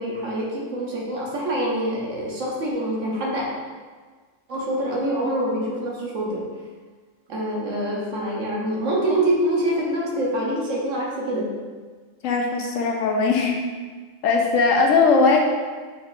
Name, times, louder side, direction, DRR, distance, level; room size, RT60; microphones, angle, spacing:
voice 1, 0.0-3.5 4.5-6.4 7.3-11.5, right 1 dB, 75° right, -3 dB, 1.3 m, -25 dB
voice 2, 12.2-13.6 14.2-15.4, left 4 dB, 85° left, 1 dB, 1.0 m, -19 dB
4.6 x 4.1 x 2.5 m, 1.5 s
omnidirectional pair, 1.3 m